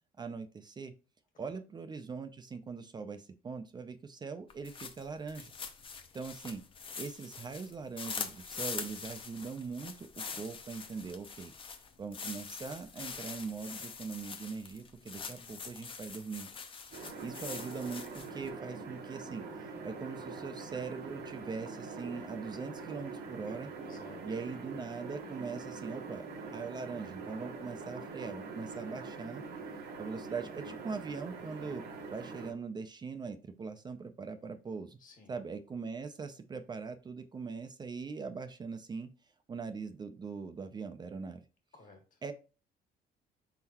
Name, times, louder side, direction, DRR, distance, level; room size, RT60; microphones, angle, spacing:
voice 1, 0.2-0.9 1.4-5.5 6.1-6.6 7.0-11.5 12.0-16.5 17.2-19.4 19.8-23.7 24.2-26.2 26.5-29.4 30.0-31.8 32.1-35.0 35.3-39.1 39.5-41.4 42.2-42.3, right 5 dB, 25° right, 8 dB, 0.4 m, -41 dB
sound 1, 4.5-18.5, left 5 dB, 30° left, 0.7 m, -44 dB
voice 2, 14.9-15.6 23.8-24.2 35.0-35.3 41.7-42.2, left 3 dB, 50° left, 3 dB, 1.7 m, -57 dB
sound 2, 16.9-32.5, right 4 dB, 70° right, 1.0 m, -44 dB
4.1 x 3.9 x 2.9 m, 0.33 s
cardioid pair, 110°, 17 cm